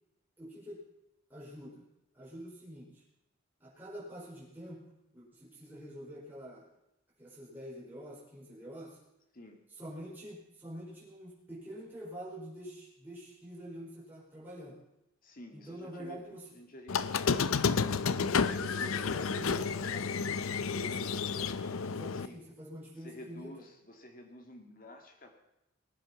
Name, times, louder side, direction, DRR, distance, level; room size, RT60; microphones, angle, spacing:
voice 1, 0.4-0.8 1.3-1.8 2.1-3.0 3.6-4.8 5.1-6.6 7.2-9.0 9.7-14.8 15.5-16.6 18.1-20.2 20.5-21.6 22.0-23.5, equal, 10° right, -7 dB, 5.0 m, -46 dB
voice 2, 15.2-19.5 22.1-22.4 23.0-25.3, left 1 dB, 40° left, 4 dB, 2.3 m, -51 dB
Squeak, 16.9-22.3, left 5 dB, 85° left, 0.6 m, -31 dB
20.0 x 9.5 x 5.8 m, 0.88 s
head